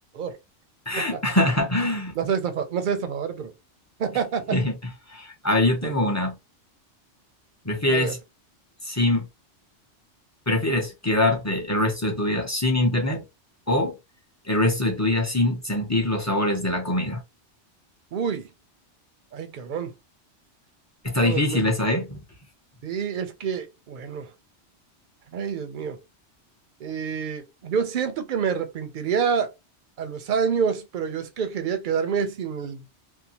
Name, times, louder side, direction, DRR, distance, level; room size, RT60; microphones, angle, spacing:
voice 1, 0.9-2.1 4.5-4.8 5.1-6.3 7.6-8.2 8.8-9.3 10.5-13.2 13.7-14.0 14.4-17.2 21.0-22.2, left 1 dB, 20° left, 0.4 m, -23 dB
voice 2, 2.2-3.5 4.0-4.4 5.8-5.9 7.9-8.1 18.1-18.5 19.3-19.9 21.2-21.6 22.8-24.3 25.3-26.0 26.8-29.5 30.0-32.8, right 6 dB, 60° right, 0.5 m, -27 dB
2.7 x 2.1 x 2.7 m
omnidirectional pair, 1.2 m